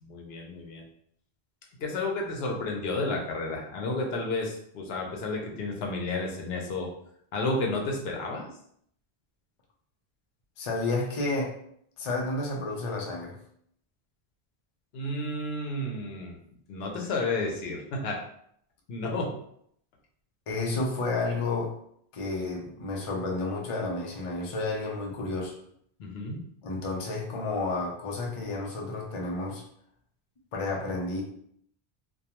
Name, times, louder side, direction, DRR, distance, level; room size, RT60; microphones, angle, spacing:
voice 1, 0.0-0.8 1.8-6.9 7.3-8.5 14.9-16.4 16.7-18.2 18.9-19.4 26.0-26.4, left 2 dB, 80° left, 1 dB, 0.8 m, -31 dB
voice 2, 10.6-11.6 12.0-13.4 20.5-21.8 22.1-25.6 26.6-29.6 30.5-31.2, left 2 dB, 45° left, 0 dB, 0.5 m, -31 dB
2.3 x 2.2 x 2.8 m, 0.68 s
omnidirectional pair, 1.0 m